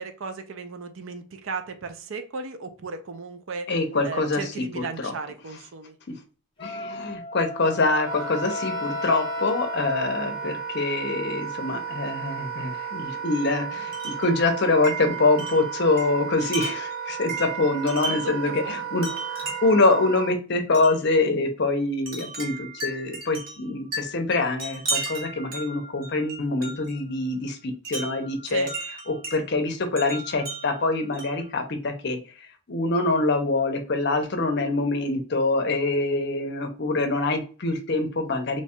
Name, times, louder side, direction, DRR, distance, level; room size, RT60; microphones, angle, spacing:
voice 1, 0.0-3.7 4.0-5.9 16.4-16.5 18.0-19.2 28.5-28.7, right 4 dB, 65° right, 8 dB, 0.5 m, -36 dB
voice 2, 3.7-4.4 4.7-5.1 6.6-19.1 19.3-28.7 29.1-32.2 32.7-38.6, left 2 dB, 50° left, 6 dB, 0.6 m, -25 dB
Wind instrument woodwind instrument, 6.6-10.6, left 5 dB, 25° left, 0.9 m, -35 dB
Wind instrument woodwind instrument 2, 8.1-20.3, right 7 dB, 5° right, 0.5 m, -34 dB
Wind chime, 13.9-14.3 14.8-18.4 19.0-19.8 20.7-21.0 22.1-27.0 27.8-29.4 30.0-31.5, right 3 dB, 40° right, 1.0 m, -35 dB
3.0 x 2.3 x 4.2 m, 0.37 s
head